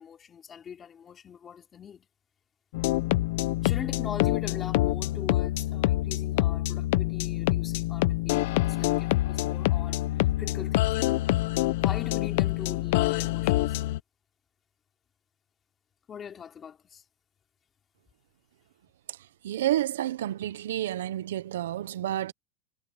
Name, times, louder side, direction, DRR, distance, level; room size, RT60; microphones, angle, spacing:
voice 1, 0.0-2.1 3.6-11.2 11.8-13.8 16.1-17.0, left 7 dB, 25° left, 3.3 m, -42 dB
sound 1, 2.7-14.0, left 18 dB, 70° left, 0.9 m, -26 dB
voice 2, 19.4-22.3, right 13 dB, 85° right, 0.8 m, -30 dB
supercardioid pair, 130°, 0 cm